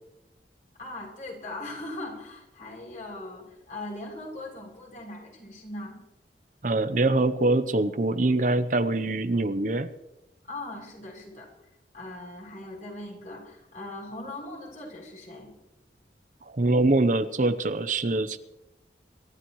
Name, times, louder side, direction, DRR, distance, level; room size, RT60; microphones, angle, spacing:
voice 1, 0.8-6.0 10.5-11.5 11.9-15.5, left 2 dB, 45° left, -2 dB, 6.9 m, -40 dB
voice 2, 6.6-9.9 16.5-18.4, right 2 dB, 45° right, 10 dB, 0.8 m, -24 dB
27.0 x 13.5 x 3.2 m, 0.95 s
head